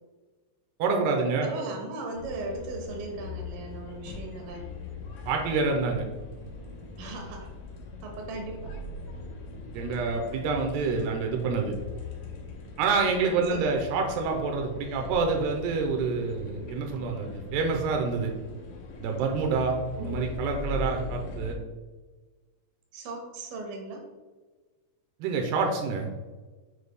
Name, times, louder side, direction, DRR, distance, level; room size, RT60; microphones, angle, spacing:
voice 1, 0.8-1.5 5.3-6.1 9.7-11.7 12.8-18.3 19.0-21.5 25.2-26.1, right 4 dB, 90° right, 2 dB, 2.3 m, -27 dB
voice 2, 1.4-4.7 7.0-7.5 8.0-8.7 13.5-13.8 20.0-20.2 22.9-24.0, right 2 dB, 70° right, 1 dB, 2.6 m, -37 dB
sound 1, 2.2-21.5, left 3 dB, 75° left, 1.9 m, -40 dB
7.3 x 6.3 x 2.2 m, 1.3 s
omnidirectional pair, 5.6 m